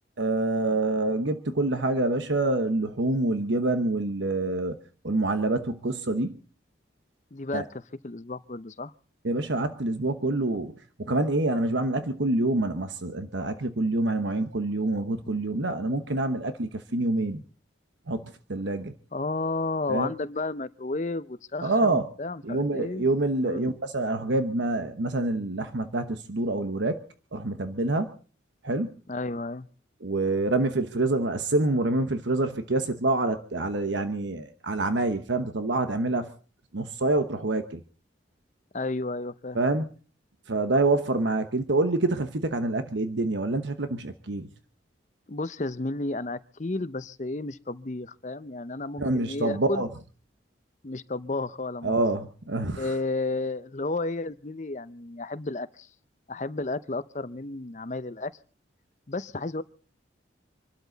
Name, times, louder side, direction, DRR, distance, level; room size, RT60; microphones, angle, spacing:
voice 1, 0.2-4.8 5.0-6.4 7.5-7.6 9.2-10.7 11.0-17.4 18.1-18.9 19.9-20.1 21.6-22.1 22.4-27.0 27.3-28.1 28.6-28.9 30.0-36.3 36.7-37.8 39.5-39.8 40.5-44.5 49.0-49.9 51.8-52.9, right 2 dB, 75° right, 1.1 m, -26 dB
voice 2, 7.3-8.9 19.1-23.1 23.4-23.7 29.1-29.7 38.7-39.6 45.3-49.8 50.8-52.1 52.8-55.9 56.3-58.3 59.1-59.6, left 2 dB, 40° left, 0.7 m, -32 dB
26.5 x 12.5 x 4.0 m
head